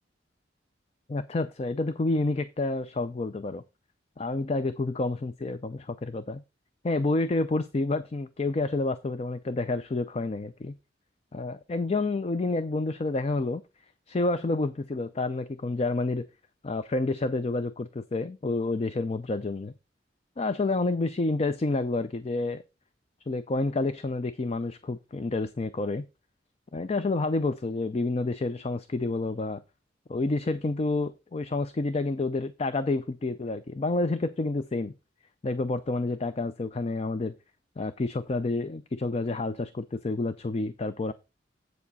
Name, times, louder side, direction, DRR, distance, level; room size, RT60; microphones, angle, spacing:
voice 1, 1.1-3.6 4.2-6.4 6.8-10.7 11.3-13.6 14.1-16.2 16.6-19.7 20.4-22.6 23.3-26.0 26.7-29.6 30.1-34.9 35.4-37.3 37.8-41.1, left 2 dB, 35° left, 0.4 m, -29 dB
8.1 x 7.2 x 4.1 m
head